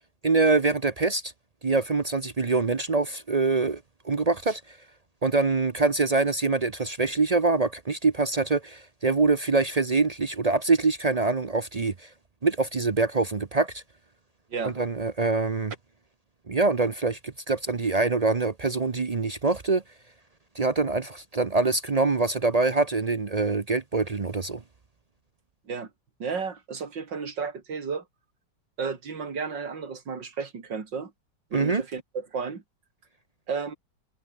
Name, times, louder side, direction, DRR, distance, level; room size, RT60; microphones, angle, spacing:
voice 1, 0.2-1.3 1.6-4.8 5.2-12.1 12.4-13.8 14.6-15.7 16.5-19.8 20.5-24.6 31.5-31.8, right 3 dB, 45° right, 0.5 m, -24 dB
voice 2, 26.2-28.0 28.8-31.1 31.5-32.6 33.5-33.7, right 5 dB, 75° right, 3.5 m, -33 dB
omnidirectional pair, 2.0 m